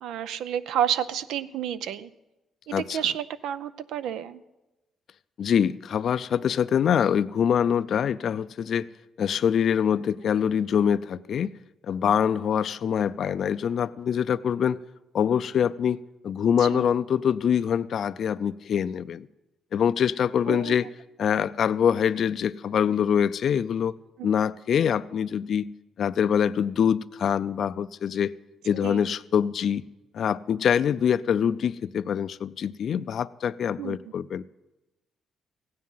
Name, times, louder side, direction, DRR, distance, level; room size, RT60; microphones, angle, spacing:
voice 1, 0.0-2.1 2.7-4.4 16.6-16.9 20.5-20.7 28.8-29.1 33.8-34.0, right 9 dB, 85° right, 0.5 m, -30 dB
voice 2, 5.4-8.9 9.2-11.6 11.8-14.8 15.1-19.3 19.7-20.9 21.2-23.9 24.2-25.7 26.0-28.3 28.6-29.8 30.1-34.4, left 8 dB, 60° left, 0.4 m, -24 dB
16.0 x 9.6 x 5.6 m
cardioid pair, 90°, 0 cm